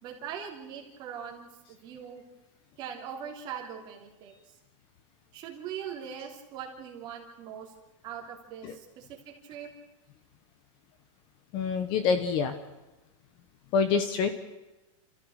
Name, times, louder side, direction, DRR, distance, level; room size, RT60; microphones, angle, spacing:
voice 1, 0.0-1.5 1.8-2.2 2.8-4.4 5.3-7.7 8.0-9.7, right 8 dB, 25° right, 1 dB, 3.2 m, -41 dB
voice 2, 11.5-12.5 13.7-14.3, left 5 dB, 30° left, 9 dB, 1.2 m, -26 dB
28.0 x 14.5 x 6.6 m, 1.0 s
supercardioid pair, 175°, 17 cm